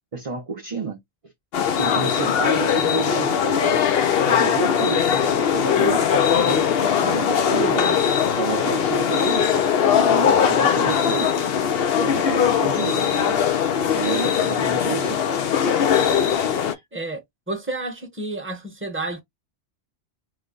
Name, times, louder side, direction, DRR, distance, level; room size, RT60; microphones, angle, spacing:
voice 1, 0.1-1.0 1.8-3.8 4.2-6.1 6.4-8.0 8.4-9.6 10.0-11.3 11.9-13.4 13.9-15.2 16.7-16.8, right 5 dB, 35° right, 0.7 m, -30 dB
sound 1, 1.5-16.7, left 8 dB, 65° left, 0.8 m, -20 dB
voice 2, 16.9-19.2, right 2 dB, 10° right, 0.9 m, -30 dB
3.1 x 2.2 x 3.8 m
omnidirectional pair, 1.2 m